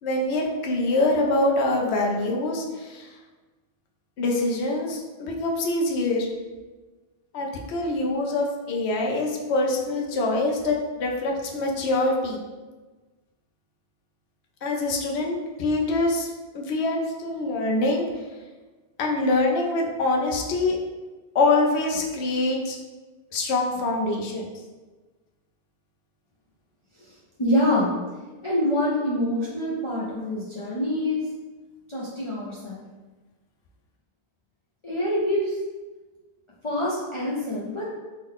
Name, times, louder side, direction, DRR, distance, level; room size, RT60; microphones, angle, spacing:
voice 1, 0.0-3.1 4.2-6.3 7.3-12.4 14.6-18.3 19.0-20.8 21.3-22.8 23.3-24.5, left 2 dB, 85° left, 0 dB, 0.9 m, -24 dB
voice 2, 27.4-27.9 28.4-31.2 31.9-32.8 34.8-35.6 36.6-37.8, left 1 dB, 40° left, -8 dB, 0.5 m, -25 dB
3.6 x 2.1 x 3.6 m, 1.3 s
omnidirectional pair, 1.1 m